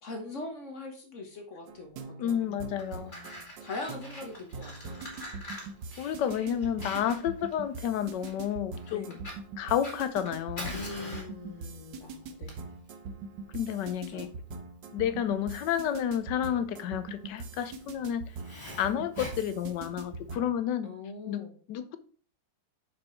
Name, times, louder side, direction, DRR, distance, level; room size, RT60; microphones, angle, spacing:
voice 1, 0.0-2.5 3.0-5.0 8.9-9.2 10.7-12.7 14.1-14.3 20.8-21.5, left 3 dB, 45° left, 1.3 m, -42 dB
sound 1, 1.7-20.6, right 4 dB, 80° right, 1.6 m, -43 dB
voice 2, 2.2-3.1 6.0-9.2 9.6-10.8 13.5-14.3 14.9-18.2 18.8-20.9 21.3-22.0, left 9 dB, 75° left, 1.4 m, -31 dB
Fire, 2.6-20.3, left 1 dB, 25° left, 2.5 m, -46 dB
6.5 x 6.3 x 4.4 m
omnidirectional pair, 2.0 m